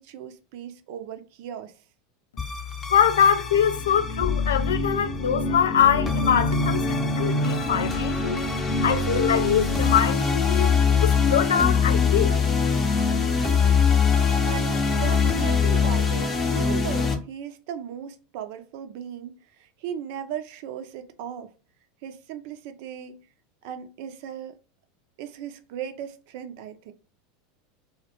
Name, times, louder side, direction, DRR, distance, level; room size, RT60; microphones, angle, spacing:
voice 1, 0.0-1.8 14.4-21.5 22.0-23.3 23.6-24.5 25.2-26.9, right 9 dB, 65° right, 0.4 m, -37 dB
sound 1, 2.4-17.1, left 5 dB, 25° left, 0.6 m, -23 dB
voice 2, 2.9-8.4 8.8-10.8 11.0-12.4, left 8 dB, 80° left, 0.3 m, -23 dB
2.1 x 2.1 x 2.8 m
hypercardioid pair, 95°, 0 cm